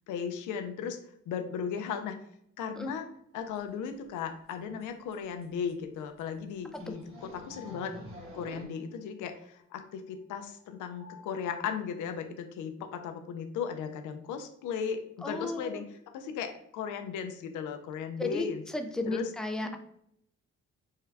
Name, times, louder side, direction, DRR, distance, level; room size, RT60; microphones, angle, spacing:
voice 1, 0.1-1.0 1.3-2.2 2.6-3.1 3.3-7.9 8.3-15.9 16.1-18.6 19.1-19.3 19.6-19.8, left 7 dB, 80° left, 7 dB, 0.5 m, -36 dB
sound 1, 3.5-3.6 3.9-4.2 4.5-4.6 4.8-4.9 5.1-5.2 5.4-5.7 6.2-6.3 6.7-8.6, equal, 45° right, 1.4 m, -47 dB
sound 2, 6.5-11.3, left 4 dB, 70° right, 1.5 m, -57 dB
voice 2, 15.2-15.8 18.2-19.8, left 2 dB, ahead, 5 dB, 0.3 m, -34 dB
3.6 x 2.2 x 3.3 m, 0.72 s
cardioid pair, 90°, 30 cm